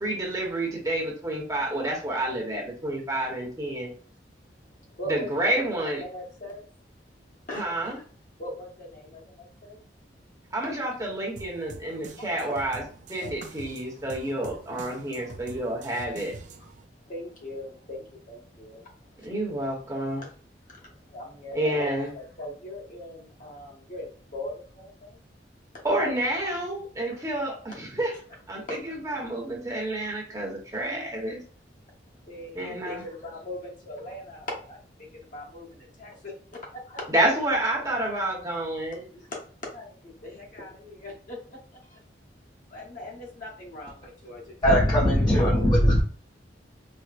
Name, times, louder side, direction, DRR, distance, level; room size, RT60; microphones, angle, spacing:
voice 1, 0.0-3.9 5.1-6.0 7.5-8.0 10.5-12.8 13.1-16.3 19.2-20.2 21.5-22.1 25.8-28.1 28.5-31.4 32.5-33.0 37.1-39.0, right 1 dB, 20° right, -2 dB, 0.9 m, -29 dB
voice 2, 4.9-6.6 7.5-7.9 8.4-9.8 10.6-10.7 11.9-12.7 13.2-13.4 17.1-18.9 19.2-19.3 20.7-25.2 27.1-27.2 28.7-29.2 32.3-36.3 36.6-37.0 39.1-39.4 39.7-42.0 42.7-44.8 45.5-45.9, left 1 dB, 50° left, -1 dB, 1.0 m, -40 dB
sound 1, 11.4-16.8, right 4 dB, 45° right, 0.4 m, -45 dB
voice 3, 44.6-46.0, equal, 25° left, -4 dB, 0.6 m, -19 dB
4.3 x 2.1 x 2.5 m, 0.42 s
head